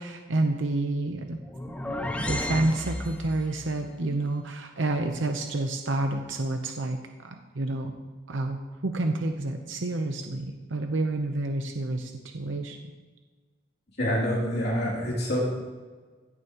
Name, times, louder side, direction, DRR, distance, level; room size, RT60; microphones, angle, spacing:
voice 1, 0.0-1.4 1.7-8.0 8.3-12.8, right 2 dB, 80° right, 4 dB, 0.9 m, -29 dB
sound 1, 1.3-3.6, left 1 dB, 5° left, 0.6 m, -33 dB
voice 2, 14.0-15.5, equal, 55° left, -6 dB, 3.0 m, -26 dB
16.0 x 10.0 x 3.0 m, 1.4 s
head